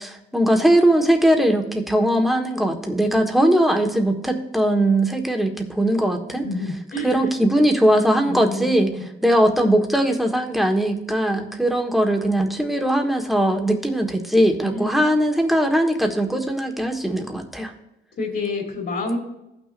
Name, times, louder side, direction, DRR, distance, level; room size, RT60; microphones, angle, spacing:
voice 1, 0.0-6.4 7.0-8.9 9.2-17.7, right 1 dB, ahead, 3 dB, 1.4 m, -20 dB
voice 2, 6.4-7.3 8.2-9.1 14.6-15.0 18.2-19.2, left 2 dB, 50° left, 1 dB, 3.0 m, -28 dB
15.5 x 6.1 x 2.5 m, 0.90 s
cardioid pair, 90°, 20 cm